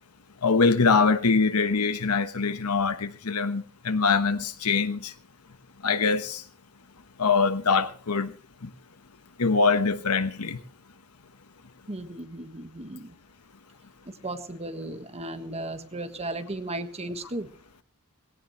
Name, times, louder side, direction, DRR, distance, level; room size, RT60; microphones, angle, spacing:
voice 1, 0.4-5.1 5.8-6.4 7.2-8.3 8.6-8.7 9.4-10.6, left 4 dB, 85° left, 1.1 m, -23 dB
voice 2, 11.9-13.2 14.1-17.5, right 2 dB, 30° right, 1.5 m, -35 dB
19.5 x 17.0 x 3.2 m
head